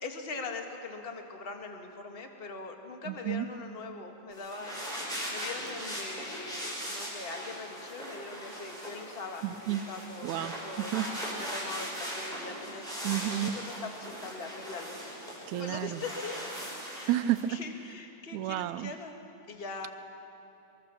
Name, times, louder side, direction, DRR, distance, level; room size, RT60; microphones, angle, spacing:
voice 1, 0.0-10.9 11.5-15.0 15.4-16.5 16.9-17.2 17.5-19.1 19.5-19.9, left 3 dB, 30° left, 3 dB, 1.2 m, -42 dB
voice 2, 3.1-3.5 9.4-9.8 10.2-11.1 13.0-13.6 15.5-16.0 17.1-17.6 18.3-18.9, right 13 dB, 75° right, 11 dB, 1.8 m, -31 dB
sound 1, 4.3-17.4, equal, ahead, 6.1 m, -39 dB
23.5 x 22.5 x 7.1 m, 2.9 s
omnidirectional pair, 3.8 m